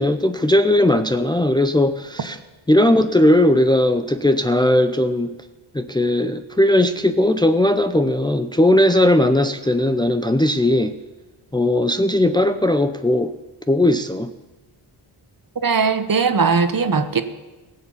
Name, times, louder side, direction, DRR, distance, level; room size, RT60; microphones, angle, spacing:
voice 1, 0.0-2.4 2.7-5.3 5.7-11.0 11.5-13.3 13.7-14.3, left 1 dB, 10° left, 8 dB, 0.6 m, -18 dB
voice 2, 15.6-17.2, right 5 dB, 45° right, 10 dB, 1.2 m, -19 dB
17.5 x 7.2 x 7.2 m, 1.2 s
cardioid pair, 65°, 49 cm